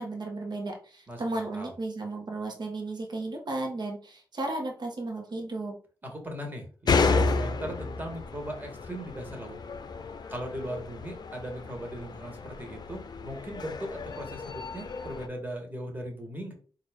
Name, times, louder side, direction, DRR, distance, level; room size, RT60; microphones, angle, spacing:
voice 1, 0.0-5.8, right 2 dB, 60° right, 2 dB, 1.1 m, -34 dB
voice 2, 1.1-1.7 6.0-9.6 10.3-16.5, equal, 25° right, 1 dB, 1.5 m, -38 dB
sound 1, 6.9-15.3, left 4 dB, 60° left, 0.5 m, -31 dB
3.9 x 2.6 x 3.5 m, 0.40 s
cardioid pair, 60°, 8 cm